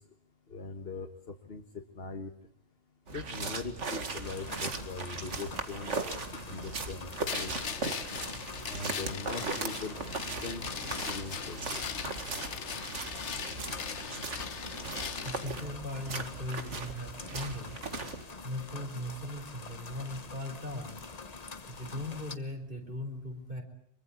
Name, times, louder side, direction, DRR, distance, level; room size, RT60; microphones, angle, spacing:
voice 1, 0.5-1.6 1.9-2.3 3.1-6.0 6.5-7.9 8.7-10.0 10.4-10.6 11.1-11.8, left 3 dB, 55° left, 5 dB, 1.7 m, -41 dB
sound 1, 3.1-18.2, right 3 dB, 90° right, 2.3 m, -38 dB
sound 2, 4.2-22.4, left 4 dB, 35° left, 1.2 m, -45 dB
sound 3, 7.3-15.5, left 6 dB, 75° left, 1.5 m, -40 dB
voice 2, 15.2-17.8 18.4-20.9 21.7-23.6, left 1 dB, 45° right, 5 dB, 4.7 m, -39 dB
24.0 x 23.5 x 8.5 m, 0.72 s
omnidirectional pair, 1.2 m